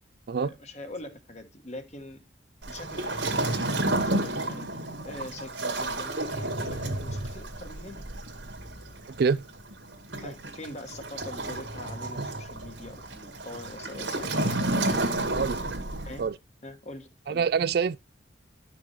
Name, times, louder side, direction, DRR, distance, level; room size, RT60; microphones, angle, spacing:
voice 1, 0.4-2.2 2.7-8.0 10.2-15.1 16.0-16.3 16.6-17.4, left 1 dB, 35° left, 1.3 m, -43 dB
Waves surf, 2.6-16.3, right 2 dB, 80° right, 2.0 m, -31 dB
voice 2, 17.3-18.0, right 6 dB, 55° right, 0.4 m, -25 dB
11.0 x 6.1 x 3.2 m
head